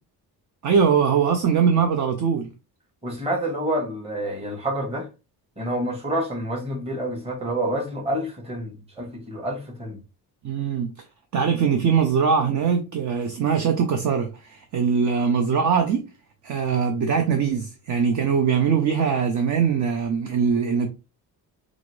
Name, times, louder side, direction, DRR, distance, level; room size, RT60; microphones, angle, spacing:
voice 1, 0.6-2.5 10.4-10.9 11.3-16.1 16.4-20.9, right 6 dB, 50° right, 0.7 m, -22 dB
voice 2, 3.0-5.1 5.6-10.0, right 1 dB, 15° right, 1.3 m, -28 dB
4.8 x 2.6 x 3.2 m
cardioid pair, 155°, 39 cm